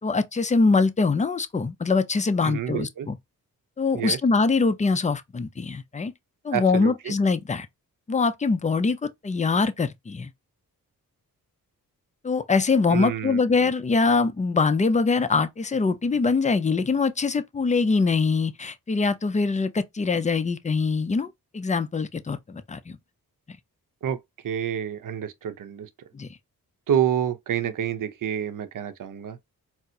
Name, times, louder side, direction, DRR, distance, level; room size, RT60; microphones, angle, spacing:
voice 1, 0.0-3.2 3.8-6.1 6.4-7.7 8.1-10.3 12.2-23.0 26.1-26.3, left 4 dB, 20° left, 0.4 m, -23 dB
voice 2, 2.4-3.1 3.9-4.2 6.5-7.2 12.9-13.7 24.0-24.2 24.4-25.9 26.9-29.4, right 9 dB, 60° right, 0.6 m, -28 dB
4.1 x 2.0 x 2.7 m
cardioid pair, 65°, 36 cm